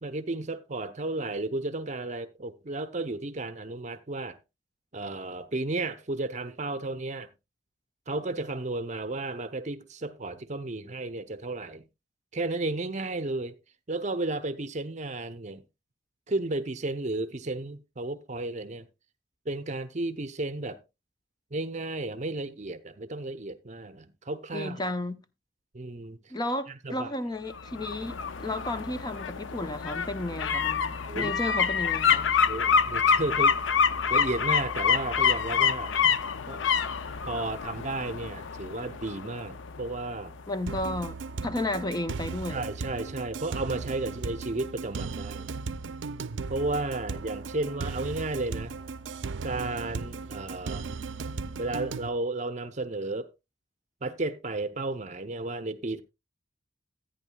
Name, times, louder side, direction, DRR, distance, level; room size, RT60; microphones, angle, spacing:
voice 1, 0.0-4.4 4.9-7.3 8.1-11.8 12.3-13.6 13.9-15.6 16.3-18.9 19.5-20.8 21.5-24.8 25.7-26.2 26.8-27.1 31.1-31.3 32.5-33.6 34.1-35.9 36.5-36.7 37.3-40.4 42.5-45.5 46.5-48.8 49.4-50.9 51.6-53.3 54.0-56.0, right 2 dB, 40° right, 0.7 m, -33 dB
voice 2, 24.5-25.2 26.3-32.3 40.5-42.7, left 1 dB, 20° left, 0.7 m, -33 dB
sound 1, 27.5-40.4 40.7-40.8, left 6 dB, 85° left, 0.5 m, -27 dB
sound 2, 40.7-52.1, right 4 dB, 80° right, 0.5 m, -36 dB
14.0 x 9.2 x 2.3 m
head